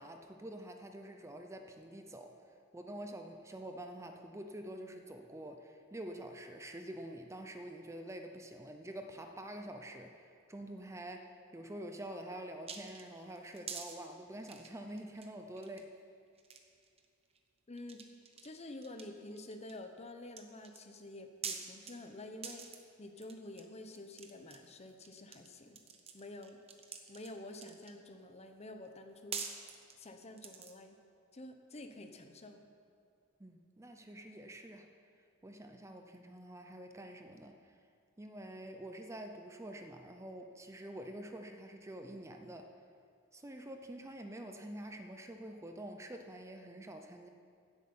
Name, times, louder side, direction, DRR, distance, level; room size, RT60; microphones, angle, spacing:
voice 1, 0.0-2.4 2.7-15.9 33.4-34.9 35.4-37.7 38.2-42.7 43.3-47.3, right 1 dB, 15° right, 5 dB, 0.6 m, -47 dB
sound 1, 12.7-14.0 14.4-15.3 15.6-15.8 16.4-17.1 17.4-17.5 17.8-18.5 18.8-19.8 20.3-20.8 21.4-21.9 22.4-22.8 23.2-23.7 23.9-25.5 25.8-28.0 28.9-29.0 29.3-30.8, right 6 dB, 30° right, 1.0 m, -45 dB
voice 2, 17.7-18.0 18.4-22.7 23.0-25.8 26.1-26.6 27.1-29.4 30.0-31.0 31.3-32.6, left 1 dB, 30° left, 6 dB, 0.8 m, -49 dB
16.0 x 8.3 x 5.5 m, 2.4 s
head